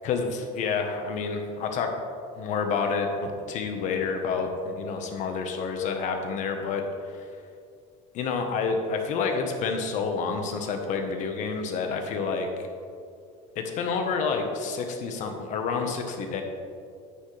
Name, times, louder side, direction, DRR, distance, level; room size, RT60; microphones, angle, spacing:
voice 1, 0.0-1.9 2.4-7.3 8.1-12.5 13.5-16.4, left 5 dB, 50° left, 4 dB, 1.3 m, -29 dB
10.0 x 8.5 x 3.4 m, 2.4 s
cardioid pair, 140°, 16 cm